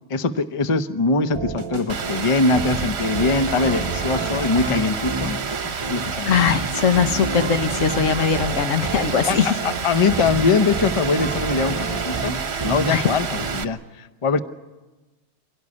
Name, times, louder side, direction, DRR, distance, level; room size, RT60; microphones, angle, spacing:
voice 1, 0.1-6.3 9.3-9.4 9.6-12.4 12.6-14.4, left 4 dB, 30° left, 11 dB, 0.7 m, -22 dB
sound 1, 1.3-13.6, right 3 dB, 25° right, 1.0 m, -30 dB
Rain, 1.9-13.6, right 6 dB, 55° right, 1.2 m, -29 dB
voice 2, 6.2-9.6 12.9-13.1, left 7 dB, 75° left, 9 dB, 1.4 m, -20 dB
24.5 x 17.0 x 9.8 m, 1.2 s
omnidirectional pair, 1.4 m